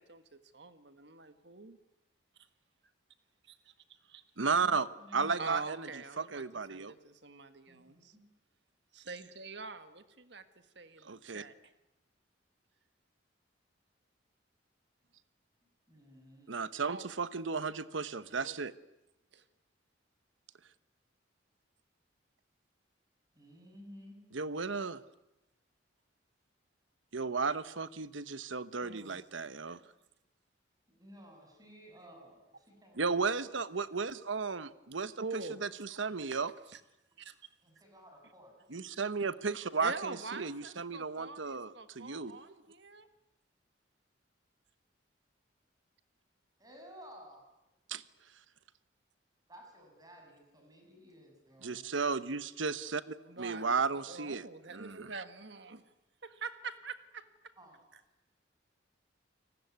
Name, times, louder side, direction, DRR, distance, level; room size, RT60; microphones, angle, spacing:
voice 1, 0.0-1.8 3.5-3.7 4.1-4.2 5.3-6.4 6.7-8.1 8.9-10.5 10.8-11.5 16.8-17.1 18.3-18.6 19.3-19.4 28.8-29.2 29.7-29.8 35.2-35.7 37.2-37.3 39.8-43.1 53.3-55.8 56.2-57.2, right 4 dB, 60° right, 10 dB, 1.7 m, -45 dB
voice 2, 4.4-5.9 6.2-6.9 11.0-11.4 16.5-18.7 24.3-25.0 27.1-29.8 33.0-36.5 38.7-42.3 47.9-48.0 51.6-54.4 54.7-55.2, right 4 dB, 80° right, 14 dB, 1.0 m, -34 dB
voice 3, 5.0-5.6 7.7-8.2 15.6-16.7 23.3-24.2 29.8-29.9 30.9-33.3 37.3-38.5 46.6-47.4 49.5-51.8 53.4-53.7 57.6-57.8, equal, 20° right, 3 dB, 7.2 m, -55 dB
29.0 x 19.5 x 9.5 m, 0.94 s
head